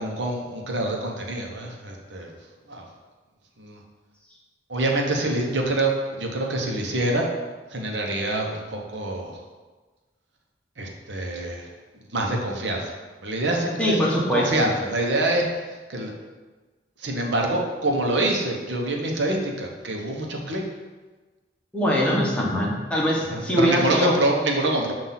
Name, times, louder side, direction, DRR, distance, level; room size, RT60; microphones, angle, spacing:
voice 1, 0.0-2.3 2.7-2.9 3.6-3.8 4.7-7.3 7.7-9.4 10.8-11.7 12.1-12.9 13.2-14.0 14.3-15.4 15.9-16.1 17.0-20.6 23.3-24.9, right 2 dB, 75° right, 1 dB, 0.9 m, -25 dB
voice 2, 13.8-14.5 21.7-24.1, equal, 5° left, -4 dB, 1.0 m, -22 dB
7.4 x 2.6 x 5.6 m, 1.3 s
head